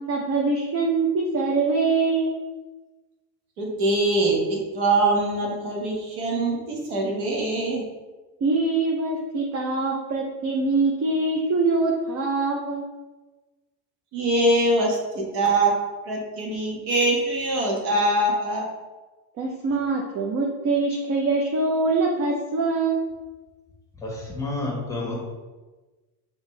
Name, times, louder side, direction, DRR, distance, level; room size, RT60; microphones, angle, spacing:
voice 1, 0.0-2.4 8.4-12.8 19.4-23.1, right 3 dB, 40° right, -1 dB, 0.7 m, -24 dB
voice 2, 3.6-7.8 14.1-15.7 16.0-18.7, right 2 dB, 85° right, -1 dB, 1.4 m, -23 dB
voice 3, 24.0-25.2, left 2 dB, 10° left, -2 dB, 1.2 m, -30 dB
5.2 x 3.1 x 3.2 m, 1.2 s
cardioid pair, 125°, 40 cm